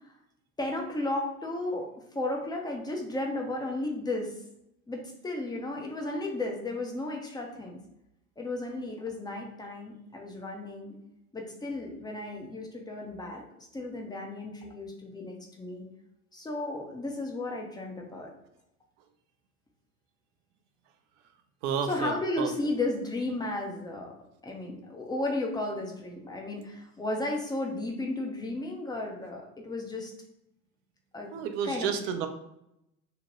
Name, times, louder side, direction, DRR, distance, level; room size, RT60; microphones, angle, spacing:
voice 1, 0.6-4.4 4.9-7.8 8.4-11.0 11.3-15.9 16.3-18.3 21.9-24.2 24.4-30.1 31.1-31.3 31.6-32.0, left 2 dB, 10° left, 0 dB, 0.5 m, -34 dB
voice 2, 21.6-22.5 31.3-32.3, right 7 dB, 55° right, 7 dB, 0.5 m, -31 dB
2.8 x 2.1 x 2.9 m, 0.84 s
hypercardioid pair, 75°, 44 cm